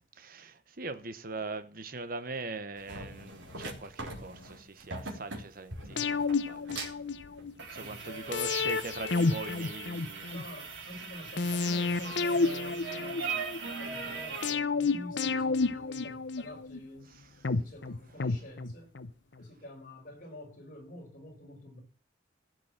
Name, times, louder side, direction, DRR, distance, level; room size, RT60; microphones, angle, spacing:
voice 1, 0.2-7.0 7.7-10.3, right 3 dB, 50° right, 1.2 m, -41 dB
sound 1, 2.8-14.5, right 4 dB, 90° right, 3.7 m, -41 dB
voice 2, 5.8-6.2 7.7-8.7 10.3-13.5 13.7-17.2 17.6-18.9 19.4-21.8, left 1 dB, 50° left, 5.2 m, -48 dB
sound 2, 6.0-7.5 8.3-10.4 11.4-13.6 14.4-16.8 17.4-19.1 19.4-19.5, left 4 dB, 75° left, 0.8 m, -30 dB
15.5 x 6.2 x 7.4 m
head